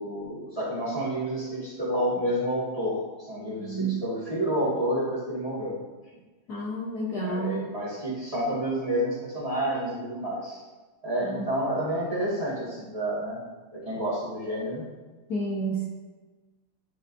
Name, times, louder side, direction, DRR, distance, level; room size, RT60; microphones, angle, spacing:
voice 1, 0.0-5.8 7.2-10.6 11.0-13.4 13.7-14.8, equal, 15° right, -7 dB, 2.0 m, -29 dB
voice 2, 3.6-4.0 6.5-7.5 11.2-11.4 15.3-15.9, right 2 dB, 55° left, -4 dB, 1.4 m, -30 dB
10.0 x 5.1 x 2.6 m, 1.3 s
omnidirectional pair, 2.3 m